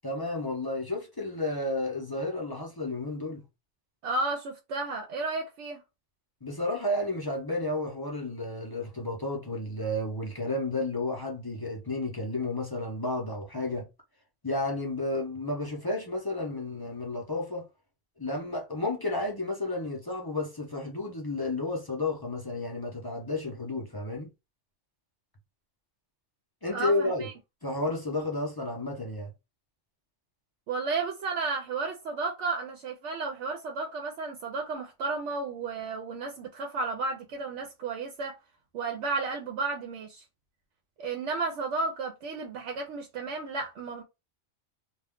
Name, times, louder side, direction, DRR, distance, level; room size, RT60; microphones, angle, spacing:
voice 1, 0.0-3.4 6.4-13.9 14.4-17.6 18.2-24.3 26.6-27.3 27.6-29.3, left 2 dB, 25° left, 0.6 m, -32 dB
voice 2, 4.0-5.8 26.7-27.3 30.7-38.4 38.7-40.2 41.0-44.0, right 3 dB, 80° right, 0.9 m, -33 dB
2.4 x 2.2 x 3.5 m
omnidirectional pair, 1.2 m